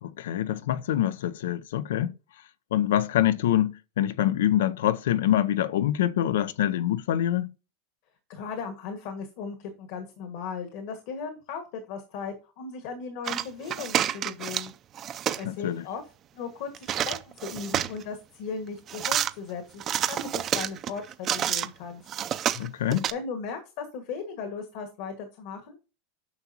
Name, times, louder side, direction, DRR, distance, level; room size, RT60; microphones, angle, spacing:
voice 1, 0.0-2.2 2.7-7.5 15.4-15.8 22.5-23.0, left 12 dB, 90° left, 0.6 m, -25 dB
voice 2, 8.3-14.7 15.4-16.0 16.3-22.0 23.1-25.8, left 5 dB, 55° left, 1.7 m, -37 dB
sound 1, 13.2-14.7 14.9-15.4 16.7-18.0 18.9-19.3 19.8-21.7 22.1-23.1, right 10 dB, 25° right, 0.5 m, -28 dB
9.5 x 6.0 x 2.9 m
supercardioid pair, 160°, 0 cm